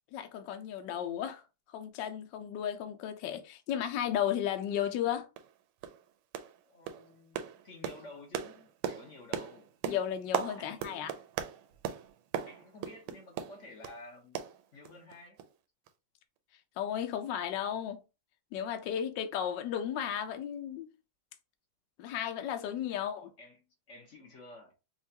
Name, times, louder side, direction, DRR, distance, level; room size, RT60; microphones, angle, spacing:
voice 1, 0.1-1.4 1.7-5.3 9.9-11.1 16.8-18.0 18.5-20.9 22.0-23.3, left 9 dB, 65° left, 1.2 m, -34 dB
sound 1, 4.8-4.9 5.4-5.5 5.8-6.0 6.3-6.6 6.9-14.0 14.4-15.1 15.4-15.5 15.9-16.0, right 9 dB, 85° right, 1.5 m, -38 dB
voice 2, 6.6-9.7 10.6-11.1 12.5-14.5 14.7-15.4 22.9-24.7, left 2 dB, 45° left, 1.1 m, -52 dB
5.7 x 2.4 x 2.8 m
omnidirectional pair, 2.4 m